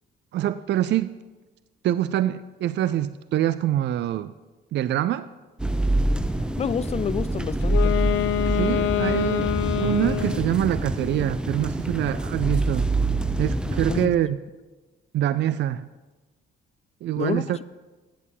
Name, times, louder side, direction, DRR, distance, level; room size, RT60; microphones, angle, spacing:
voice 1, 0.3-1.1 1.8-4.3 4.7-5.3 8.5-12.9 13.4-14.4 15.1-15.9 17.0-17.6, right 12 dB, 65° right, 15 dB, 0.4 m, -25 dB
sound 1, 5.6-14.1, right 1 dB, 5° right, 0.7 m, -26 dB
voice 2, 6.6-7.9 13.7-14.1 17.2-17.4, left 7 dB, 30° left, 18 dB, 0.4 m, -28 dB
Wind instrument woodwind instrument, 7.6-10.5, left 13 dB, 85° left, 0.6 m, -25 dB
9.2 x 8.2 x 7.4 m, 1.2 s
cardioid pair, 90°, 20 cm